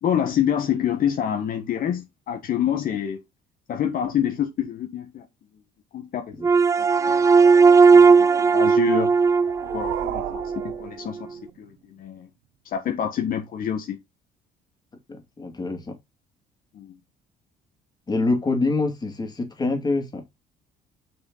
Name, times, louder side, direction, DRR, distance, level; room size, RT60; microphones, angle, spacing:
voice 1, 0.0-3.2 3.7-5.2 5.9-6.2 7.1-7.3 7.9-9.1 9.6-10.4 10.8-12.3 12.7-14.0 16.7-17.0, left 9 dB, 55° left, 1.5 m, -27 dB
sound 1, 6.4-10.7, right 5 dB, 20° right, 0.4 m, -17 dB
sound 2, 9.1-11.7, right 13 dB, 90° right, 0.8 m, -35 dB
voice 2, 15.1-16.0 18.1-20.2, left 3 dB, 25° left, 2.5 m, -25 dB
6.1 x 6.1 x 4.0 m
cardioid pair, 110°, 17 cm